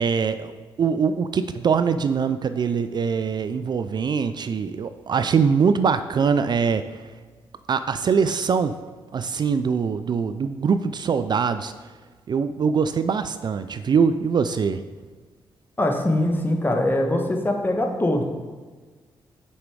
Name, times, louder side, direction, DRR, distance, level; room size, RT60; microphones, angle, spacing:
voice 1, 0.0-7.1 7.7-8.8 9.1-11.7 12.3-14.8, right 6 dB, 50° right, 11 dB, 0.4 m, -23 dB
voice 2, 15.8-18.2, left 1 dB, 20° left, 3 dB, 1.2 m, -22 dB
6.4 x 5.3 x 4.8 m, 1.4 s
supercardioid pair, 55°, 10 cm